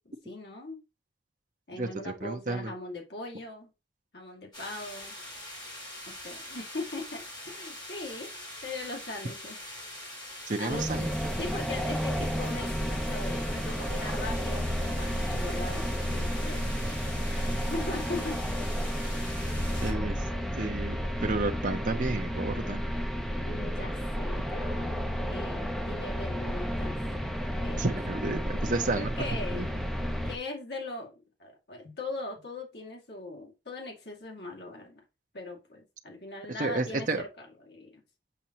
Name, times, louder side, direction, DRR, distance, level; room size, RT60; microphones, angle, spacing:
voice 1, 0.1-0.8 1.7-3.7 4.1-5.2 6.1-8.3 8.6-9.6 10.6-10.8 11.4-16.8 17.3-18.4 23.4-27.0 27.6-28.2 29.0-29.6 30.2-31.1 31.4-35.0 35.3-37.1 37.4-38.0, left 2 dB, 65° left, 2.2 m, -40 dB
voice 2, 1.7-2.7 10.5-11.1 19.8-20.3 20.5-22.8 27.8-29.1 29.5-29.7 36.6-37.2, right 3 dB, 45° right, 0.8 m, -31 dB
sound 1, 4.5-19.9, left 1 dB, 25° left, 4.0 m, -43 dB
sound 2, 10.7-30.4, equal, ahead, 0.7 m, -32 dB
7.1 x 5.2 x 2.9 m
head